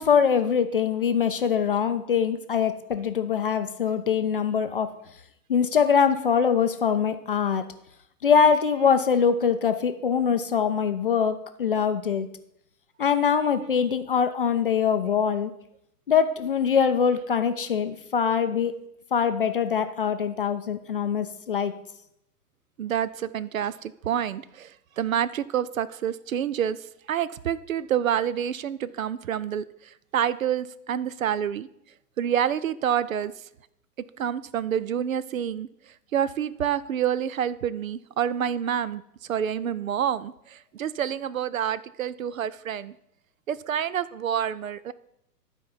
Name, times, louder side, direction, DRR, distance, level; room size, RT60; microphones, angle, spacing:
voice 1, 0.0-4.9 5.5-7.7 8.2-12.3 13.0-15.5 16.1-18.8 19.1-21.7, left 7 dB, 35° left, 9 dB, 0.4 m, -23 dB
voice 2, 22.8-26.8 27.1-29.6 30.1-31.7 32.2-33.3 34.2-35.7 36.1-39.0 39.3-42.9 43.5-44.9, right 9 dB, 60° right, 17 dB, 0.5 m, -28 dB
12.0 x 4.5 x 5.4 m, 0.79 s
figure-of-eight pair, 115°, 48 cm